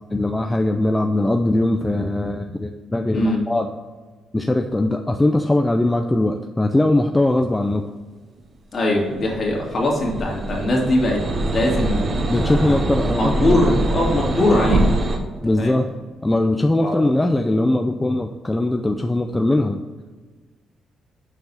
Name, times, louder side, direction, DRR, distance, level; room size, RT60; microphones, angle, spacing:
voice 1, 0.1-3.7 4.3-7.8 12.3-13.7 15.4-15.9 16.2-19.8, left 1 dB, 15° left, 4 dB, 0.5 m, -20 dB
voice 2, 8.7-11.2 11.5-12.7 13.2-14.9 15.6-15.8 16.8-17.0, left 1 dB, 45° left, -2 dB, 2.4 m, -21 dB
sound 1, 9.1-15.2, right 2 dB, 45° right, 1.0 m, -23 dB
6.6 x 4.7 x 5.6 m, 1.4 s
cardioid pair, 90°, 0 cm